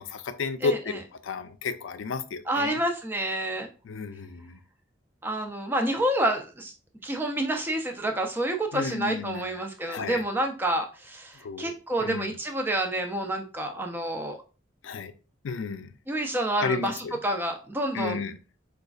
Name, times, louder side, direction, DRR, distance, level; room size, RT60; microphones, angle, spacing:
voice 1, 0.0-2.8 3.9-4.6 8.7-9.5 9.8-10.2 11.4-11.7 12.0-12.3 14.8-15.1 15.4-15.9 16.6-17.1 17.9-18.3, left 5 dB, 80° left, 10 dB, 0.4 m, -32 dB
voice 2, 0.6-1.0 2.5-3.7 5.2-6.7 7.0-14.4 16.1-18.2, right 1 dB, 10° right, 4 dB, 0.4 m, -28 dB
4.9 x 2.3 x 2.3 m, 0.35 s
head